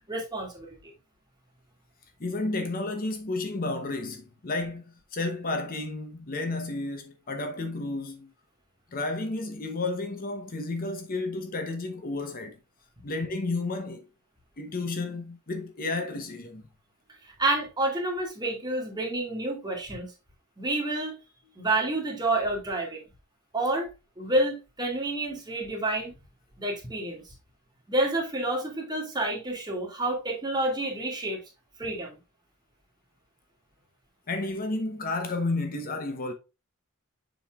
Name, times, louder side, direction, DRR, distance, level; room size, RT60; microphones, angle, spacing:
voice 1, 0.1-0.9 17.2-20.1 20.6-21.1 21.6-23.0 23.5-23.9 24.2-26.1 26.6-27.2 27.9-31.4 31.8-32.2, right 2 dB, 20° right, 2.1 m, -29 dB
voice 2, 2.2-8.3 8.9-12.6 13.0-14.1 14.6-16.7 34.3-36.3, left 2 dB, 40° left, 0.8 m, -32 dB
7.1 x 5.5 x 2.4 m
head